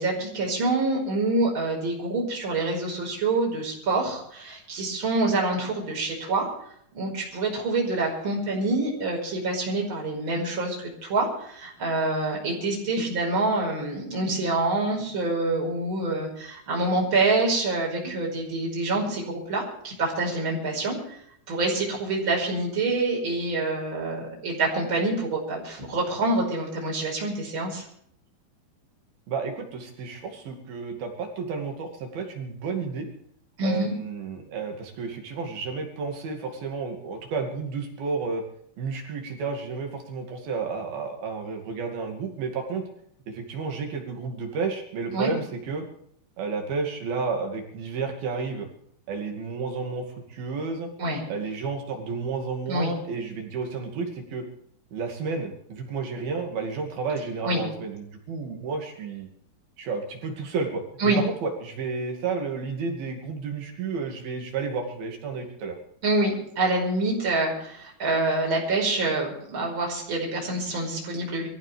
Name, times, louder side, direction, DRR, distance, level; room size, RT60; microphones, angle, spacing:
voice 1, 0.0-6.5 6.9-21.2 21.5-27.8 33.6-33.9 45.1-45.3 51.0-51.2 52.7-52.9 57.4-57.6 61.0-61.2 66.0-71.5, right 2 dB, 25° right, -3 dB, 5.7 m, -26 dB
voice 2, 29.3-33.1 33.6-38.4 38.8-42.9 43.3-45.8 46.4-48.7 49.1-50.9 51.3-54.4 54.9-59.3 59.8-65.8, right 4 dB, 60° right, 2 dB, 3.9 m, -31 dB
24.5 x 15.0 x 3.4 m, 0.68 s
omnidirectional pair, 5.1 m